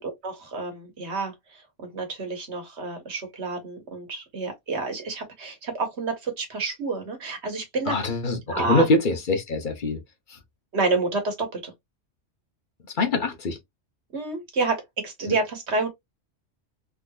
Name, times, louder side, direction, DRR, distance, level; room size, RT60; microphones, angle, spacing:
voice 1, 0.2-1.3 1.9-8.0 8.5-8.9 10.7-11.7 14.1-15.9, right 3 dB, 75° right, 1.5 m, -29 dB
voice 2, 7.9-10.0 13.0-13.6, left 2 dB, 50° left, 1.0 m, -24 dB
3.6 x 2.9 x 2.3 m
omnidirectional pair, 1.2 m